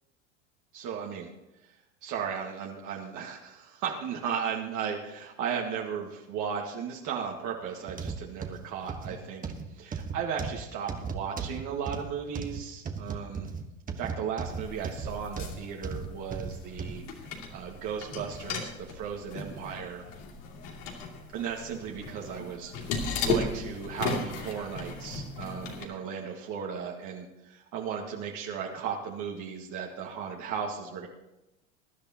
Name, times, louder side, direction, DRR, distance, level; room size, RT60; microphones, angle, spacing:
voice 1, 0.7-1.3 1.6-1.7 2.0-9.4 9.7-13.5 14.0-17.0 17.5-20.0 21.3-31.1, right 7 dB, 50° right, 0 dB, 1.9 m, -35 dB
sound 1, 7.9-17.0 17.5-17.7 18.3-18.4, right 5 dB, 20° right, 1.3 m, -37 dB
sound 2, 14.4-25.8, left 4 dB, 70° left, 2.8 m, -36 dB
22.0 x 10.5 x 2.9 m, 0.95 s
hypercardioid pair, 100°, 38 cm